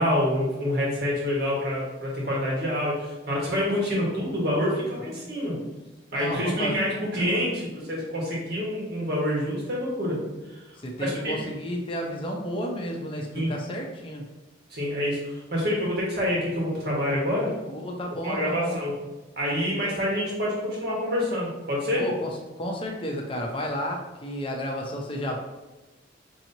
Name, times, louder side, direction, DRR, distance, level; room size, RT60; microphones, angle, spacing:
voice 1, 0.0-5.6 6.1-10.2 10.5-10.6 11.0-11.3 13.3-13.5 14.7-17.5 18.2-18.9 19.4-22.1, equal, 55° right, -4 dB, 1.3 m, -27 dB
voice 2, 6.1-6.8 10.8-14.3 17.7-18.8 22.0-22.3 22.6-25.4, equal, 25° left, 0 dB, 0.6 m, -32 dB
5.5 x 2.9 x 2.7 m, 1.1 s
head